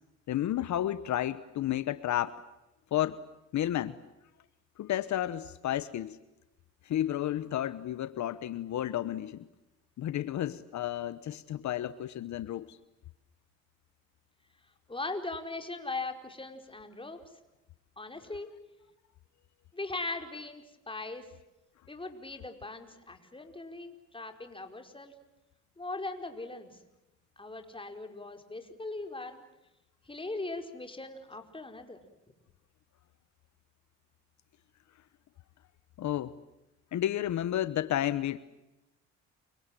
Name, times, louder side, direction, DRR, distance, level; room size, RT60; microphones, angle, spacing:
voice 1, 0.3-2.4 2.9-3.2 3.5-4.0 4.8-6.2 6.8-9.5 10.0-12.8 36.0-36.4 36.9-38.4, left 12 dB, 70° left, 15 dB, 1.1 m, -32 dB
voice 2, 14.9-17.2 18.0-18.5 19.7-21.3 21.9-25.1 25.8-26.7 27.4-29.4 30.1-32.0, left 2 dB, 15° left, 6 dB, 4.9 m, -39 dB
29.5 x 25.0 x 7.6 m, 0.96 s
cardioid pair, 90°, 30 cm